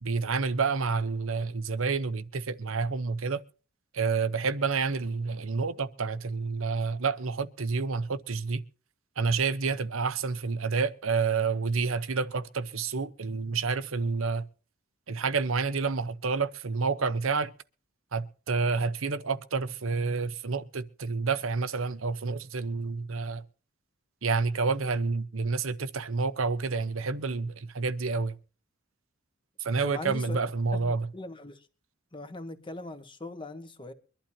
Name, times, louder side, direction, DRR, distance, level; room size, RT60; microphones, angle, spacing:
voice 1, 0.0-3.4 3.9-8.6 9.2-14.4 15.1-17.5 18.1-23.4 24.2-28.4 29.6-31.1, right 4 dB, 75° right, 1.0 m, -29 dB
voice 2, 29.8-30.4 30.7-31.7 32.1-33.9, left 2 dB, 25° left, 1.5 m, -40 dB
23.5 x 12.0 x 2.9 m
head